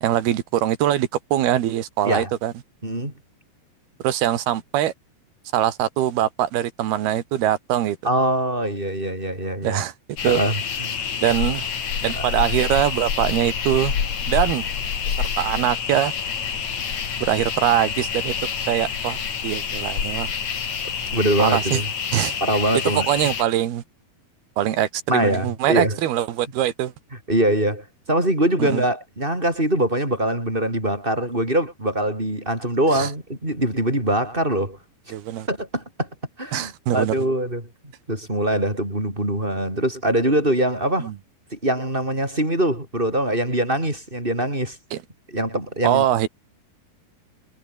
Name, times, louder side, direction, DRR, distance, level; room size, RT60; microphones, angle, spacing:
voice 1, 0.0-2.5 4.0-4.9 5.5-8.0 9.6-9.9 10.2-10.4 11.2-11.7 12.0-13.9 14.3-14.6 15.2-16.1 17.2-18.3 18.7-20.3 21.4-21.8 22.1-22.4 23.0-23.8 24.6-26.9 28.6-28.8 32.9-33.1 35.1-35.5 36.5-37.1 41.0-41.2 44.9-45.0 45.8-46.3, right 12 dB, 75° right, 3.7 m, -22 dB
voice 2, 2.8-3.1 8.0-9.8 10.3-11.0 12.2-12.3 21.1-21.9 22.4-23.1 25.1-26.0 27.3-34.8 35.5-36.1 36.4-37.6 38.1-41.1 41.5-44.8 45.3-46.0, right 1 dB, 10° right, 8.0 m, -23 dB
sound 1, 10.2-23.4, left 7 dB, 45° left, 3.7 m, -27 dB
omnidirectional pair, 4.6 m